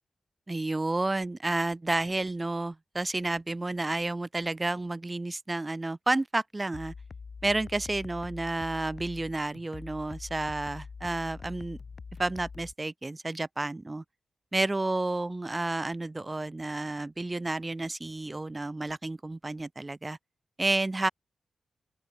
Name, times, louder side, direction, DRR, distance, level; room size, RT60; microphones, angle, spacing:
voice 1, 0.5-6.9 7.4-11.8 12.2-14.0 14.5-20.2 20.6-21.1, right 2 dB, 20° right, 3.0 m, -31 dB
sound 1, 6.7-12.7, left 5 dB, 45° left, 1.5 m, -44 dB
open air
wide cardioid pair, 145°, 0 cm